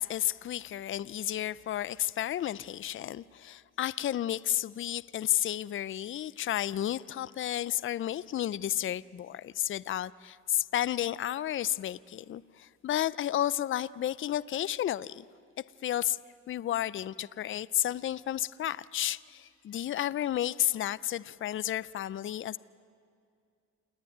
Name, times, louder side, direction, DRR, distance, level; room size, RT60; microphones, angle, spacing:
voice 1, 0.0-15.2 15.8-16.2 16.5-22.6, left 12 dB, 45° left, 0.5 m, -32 dB
28.5 x 10.5 x 9.4 m
cardioid pair, 90°, 30 cm